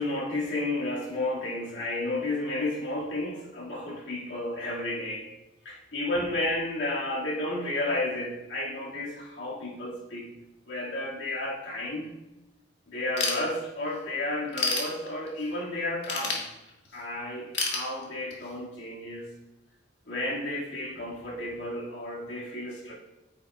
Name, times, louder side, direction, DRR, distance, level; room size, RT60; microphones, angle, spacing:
voice 1, 0.0-5.3 5.6-10.3 10.7-12.1 12.9-16.4 16.9-19.3 20.1-22.9, left 1 dB, 85° left, -4 dB, 2.1 m, -32 dB
Ratchet pawl / Tools, 13.2-14.0 14.3-15.5 16.0-17.0 17.5-18.5, left 3 dB, 65° left, 1.7 m, -30 dB
9.2 x 6.9 x 2.4 m, 0.97 s
head